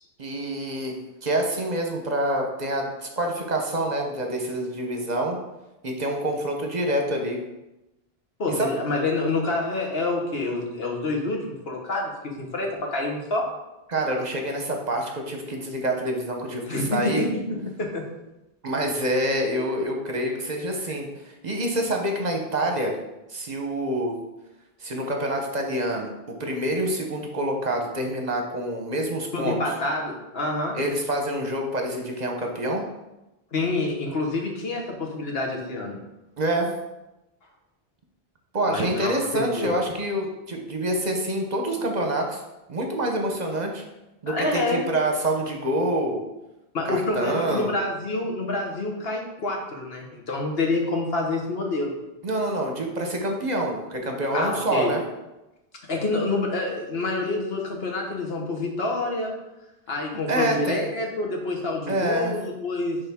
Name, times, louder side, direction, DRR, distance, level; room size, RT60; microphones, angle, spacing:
voice 1, 0.2-1.0 1.2-5.4 5.8-7.4 8.6-8.7 13.9-17.2 18.6-23.0 23.3-24.2 24.8-29.6 30.7-32.8 36.4-36.7 38.5-42.4 42.7-43.8 44.2-46.2 46.8-47.7 52.2-55.0 60.3-60.9 61.9-62.3, right 1 dB, 45° right, 2 dB, 0.9 m, -26 dB
voice 2, 8.4-12.1 12.4-13.5 16.7-17.2 17.8-18.0 29.3-30.7 33.5-36.0 38.7-39.7 44.3-44.8 46.7-51.9 54.3-54.9 55.9-59.3 59.9-63.0, left 2 dB, 70° left, 0 dB, 1.4 m, -27 dB
10.0 x 3.4 x 3.6 m, 0.97 s
omnidirectional pair, 1.0 m